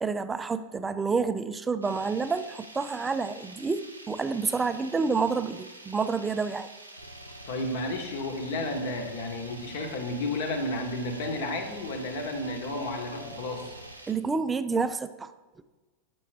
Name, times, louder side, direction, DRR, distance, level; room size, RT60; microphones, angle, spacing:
voice 1, 0.0-6.7 14.1-15.3, right 4 dB, 15° right, 12 dB, 0.3 m, -29 dB
sound 1, 1.8-14.1, right 2 dB, 85° right, 0.7 m, -48 dB
sound 2, 7.0-14.0, equal, 85° left, 0.7 m, -47 dB
voice 2, 7.5-13.8, left 2 dB, 50° left, 4 dB, 1.0 m, -32 dB
7.6 x 6.0 x 3.3 m, 1.2 s
figure-of-eight pair, 90°, 0 cm